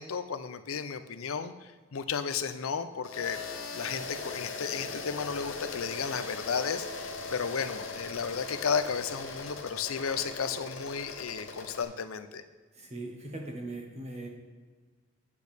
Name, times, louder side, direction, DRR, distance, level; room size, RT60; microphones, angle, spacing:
voice 1, 0.0-3.4 3.7-12.4, left 6 dB, 90° left, 11 dB, 0.6 m, -33 dB
sound 1, 3.0-11.8, left 3 dB, 70° left, 1.1 m, -40 dB
voice 2, 12.7-14.3, right 2 dB, 30° right, 1 dB, 1.3 m, -40 dB
8.4 x 8.3 x 3.5 m, 1.4 s
head